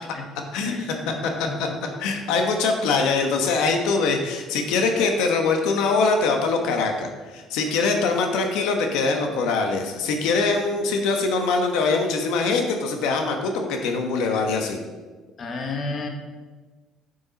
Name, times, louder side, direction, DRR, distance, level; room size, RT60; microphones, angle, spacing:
voice 1, 0.1-1.8 15.4-16.1, left 3 dB, 35° left, 3 dB, 1.2 m, -32 dB
voice 2, 2.0-14.8, left 4 dB, 85° left, 3 dB, 1.1 m, -23 dB
9.0 x 7.0 x 4.1 m, 1.3 s
cardioid pair, 145°, 0 cm